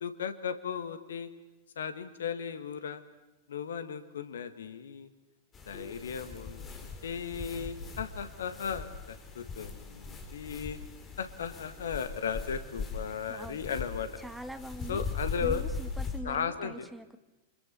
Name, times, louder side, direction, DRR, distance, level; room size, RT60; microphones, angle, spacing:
voice 1, 0.0-1.3 1.8-3.0 3.5-5.1 5.7-10.8 11.2-14.1 14.9-15.6 16.2-16.9, left 7 dB, 65° left, 10 dB, 1.8 m, -36 dB
sound 1, 5.5-16.2, left 4 dB, 25° left, 4.8 m, -40 dB
voice 2, 13.1-13.6 14.2-15.0 15.4-17.2, right 1 dB, 5° right, 8 dB, 1.8 m, -43 dB
28.5 x 26.0 x 7.0 m, 1.0 s
figure-of-eight pair, 90°, 0 cm